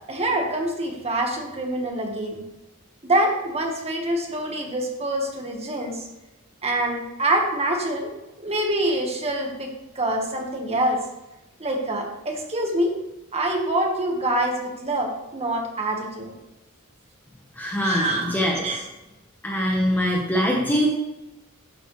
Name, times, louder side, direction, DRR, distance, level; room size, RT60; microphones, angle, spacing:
voice 1, 0.1-2.4 3.0-6.0 6.6-8.1 8.4-11.0 11.6-12.9 13.3-16.3 17.8-18.8, right 1 dB, 30° right, 1 dB, 1.6 m, -25 dB
voice 2, 17.6-18.8 19.4-20.9, equal, 10° left, -2 dB, 1.3 m, -23 dB
11.5 x 7.5 x 3.3 m, 0.98 s
head